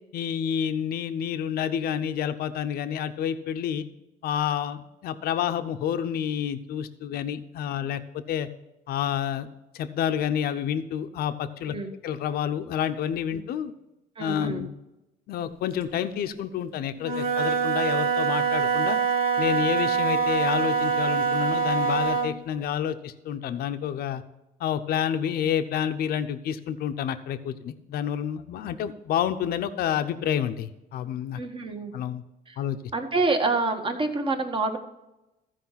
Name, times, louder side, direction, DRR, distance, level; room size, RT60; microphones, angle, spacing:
voice 1, 0.1-3.9 4.2-8.5 8.9-9.5 9.7-11.7 12.0-13.7 14.2-14.7 15.3-19.0 19.4-24.2 24.6-31.4 31.9-32.2 32.6-32.8, left 9 dB, 65° left, 10 dB, 0.7 m, -29 dB
voice 2, 14.2-14.7 31.3-31.9 32.5-32.6 32.9-34.8, right 3 dB, 30° right, 5 dB, 1.4 m, -27 dB
Wind instrument woodwind instrument, 17.0-22.4, right 6 dB, 60° right, 1.3 m, -24 dB
14.0 x 5.0 x 5.7 m, 0.94 s
cardioid pair, 110°, 17 cm